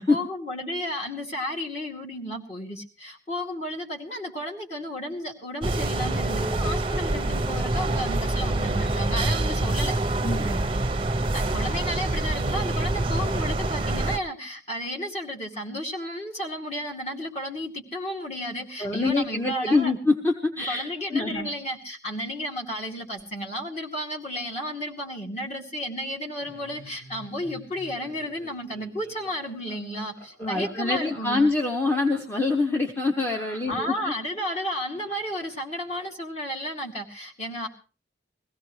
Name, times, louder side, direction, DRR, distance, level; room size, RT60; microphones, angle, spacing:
voice 1, 0.0-9.9 11.3-19.9 20.6-31.4 33.5-37.7, equal, 35° left, 0 dB, 2.4 m, -33 dB
sound 1, 5.6-14.2, right 2 dB, 30° right, 0.7 m, -26 dB
voice 2, 10.2-10.6 18.8-21.5 30.4-34.1, left 3 dB, 10° left, 2 dB, 0.8 m, -25 dB
Laughter, 26.4-34.3, right 1 dB, 55° left, 6.7 m, -48 dB
22.0 x 16.0 x 3.2 m, 0.35 s
head